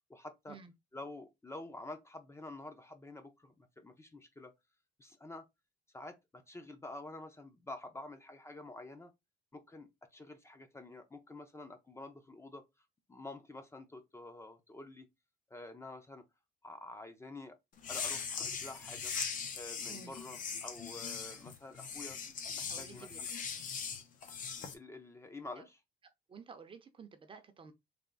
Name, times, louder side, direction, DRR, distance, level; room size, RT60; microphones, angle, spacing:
voice 1, 0.1-0.6 0.9-4.5 5.0-5.4 5.9-9.1 9.5-15.1 15.5-16.2 16.6-17.6 17.9-19.1 19.5-22.2 22.6-23.3 24.7-25.8, left 2 dB, 15° left, 0.7 m, -48 dB
sound 1, 17.8-24.7, left 6 dB, 50° left, 0.9 m, -40 dB
voice 2, 19.9-20.2 22.7-23.2 25.6-25.7 26.3-27.7, right 5 dB, 30° right, 0.7 m, -52 dB
3.4 x 2.6 x 3.9 m
cardioid pair, 110°, 17 cm